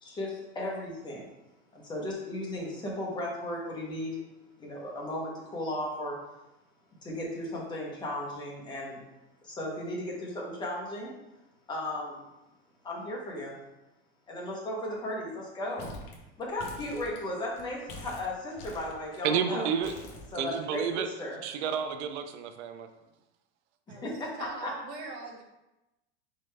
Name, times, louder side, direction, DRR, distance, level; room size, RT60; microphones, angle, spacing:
voice 1, 0.0-1.3 1.7-4.2 4.6-6.2 7.0-9.0 9.4-11.1 11.7-12.2 12.8-13.6 14.3-15.9 16.4-19.7 20.3-21.4 23.9-24.3 24.6-24.7, left 1 dB, 15° left, -3 dB, 0.9 m, -35 dB
sound 1, 15.8-16.1 16.4-17.6 17.9-19.3 19.8-21.1, left 2 dB, 50° left, 0.9 m, -45 dB
voice 2, 19.2-19.9 20.4-21.1 21.4-22.9, right 7 dB, 90° right, 7 dB, 0.6 m, -30 dB
voice 3, 24.4-25.4, right 3 dB, 65° right, 0 dB, 1.1 m, -42 dB
4.2 x 3.8 x 3.3 m, 0.96 s
supercardioid pair, 165°, 33 cm